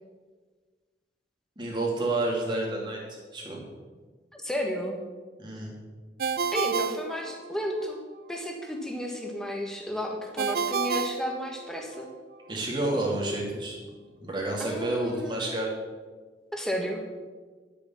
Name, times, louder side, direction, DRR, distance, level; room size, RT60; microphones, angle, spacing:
voice 1, 1.6-3.6 5.4-5.7 12.5-13.8 14.2-15.7, right 2 dB, 25° right, -2 dB, 2.7 m, -29 dB
voice 2, 4.3-5.0 6.5-8.0 8.3-12.1 14.6-15.4 16.5-17.0, equal, 5° left, 1 dB, 1.6 m, -32 dB
Ringtone, 6.2-7.9 10.4-12.1, right 5 dB, 55° right, 0.4 m, -30 dB
11.5 x 7.0 x 7.2 m, 1.4 s
head